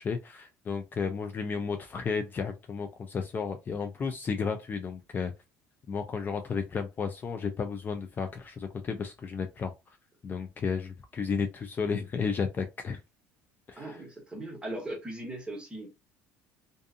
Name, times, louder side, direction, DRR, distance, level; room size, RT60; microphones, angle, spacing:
voice 1, 0.0-5.3 5.9-9.7 10.2-13.0 13.7-13.9, left 5 dB, 30° left, 0.4 m, -33 dB
voice 2, 13.8-15.9, right 1 dB, 15° right, 1.1 m, -39 dB
2.5 x 2.5 x 2.4 m
supercardioid pair, 105°, 6 cm